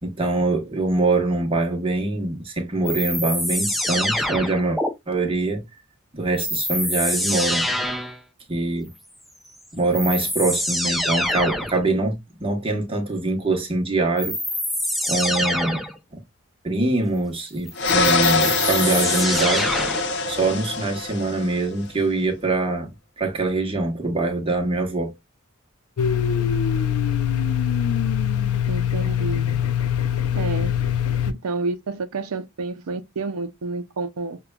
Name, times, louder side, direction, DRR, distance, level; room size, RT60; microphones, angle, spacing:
voice 1, 0.0-4.8 5.1-5.6 6.1-7.7 8.5-8.9 9.7-14.4 15.1-15.8 16.1-16.2 16.6-19.8 20.3-22.9 23.2-25.1, right 2 dB, 25° right, 1.0 m, -24 dB
sound 1, 2.8-4.9 6.4-8.2 9.5-9.6 9.9-11.8 14.2-16.0 17.7-20.1, equal, ahead, 0.5 m, -25 dB
sound 2, 17.8-21.7, left 3 dB, 50° left, 0.7 m, -23 dB
Domestic sounds home sounds, 26.0-31.3, left 8 dB, 85° left, 0.5 m, -23 dB
voice 2, 28.7-29.5 30.3-30.8 31.3-34.4, right 3 dB, 80° right, 0.5 m, -29 dB
6.6 x 2.3 x 2.2 m
head